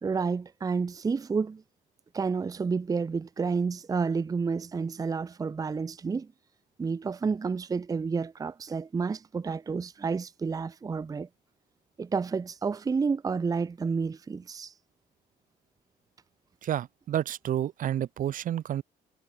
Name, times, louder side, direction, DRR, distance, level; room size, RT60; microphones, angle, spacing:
voice 1, 0.0-1.6 2.1-6.3 6.8-11.3 12.0-14.7, right 5 dB, 20° right, 0.7 m, -30 dB
voice 2, 16.6-18.8, right 11 dB, 50° right, 0.9 m, -30 dB
cardioid pair, 110°, 17 cm